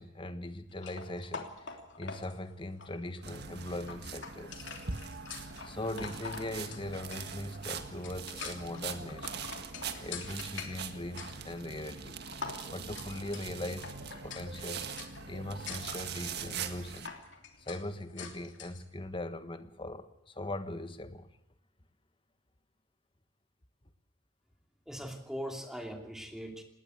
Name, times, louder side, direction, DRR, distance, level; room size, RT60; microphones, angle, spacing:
voice 1, 0.0-4.7 5.6-9.4 10.0-12.2 12.7-14.8 15.3-17.1 17.6-21.3, left 1 dB, 25° left, 10 dB, 1.4 m, -40 dB
sound 1, 0.7-18.8, left 5 dB, 65° left, 3.1 m, -46 dB
sound 2, 3.2-17.1, right 5 dB, 55° right, 1.8 m, -42 dB
voice 2, 24.9-26.6, equal, 5° right, 4 dB, 2.9 m, -40 dB
19.5 x 18.5 x 8.2 m, 0.83 s
head